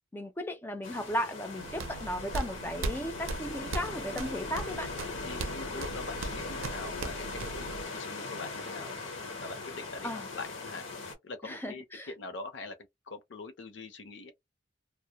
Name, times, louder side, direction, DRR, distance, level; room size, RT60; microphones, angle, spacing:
voice 1, 0.1-4.9 10.0-10.3 11.4-12.1, equal, 10° left, 0.4 m, -35 dB
sound 1, 0.8-11.1, left 3 dB, 80° left, 1.0 m, -40 dB
sound 2, 1.6-7.8, right 3 dB, 90° right, 0.5 m, -39 dB
voice 2, 5.3-8.9 9.4-10.9 11.2-12.8 13.1-14.3, left 3 dB, 65° left, 0.6 m, -43 dB
2.1 x 2.0 x 2.8 m
head